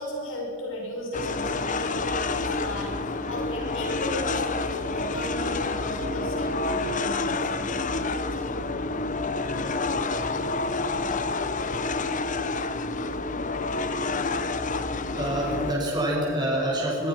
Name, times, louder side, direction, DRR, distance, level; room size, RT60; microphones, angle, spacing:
voice 1, 0.0-8.5, equal, 90° left, -2 dB, 7.4 m, -36 dB
sound 1, 1.1-15.7, left 3 dB, 40° left, 1.1 m, -28 dB
voice 2, 15.0-17.1, right 1 dB, 20° right, -4 dB, 7.1 m, -27 dB
23.0 x 23.0 x 6.1 m, 2.1 s
head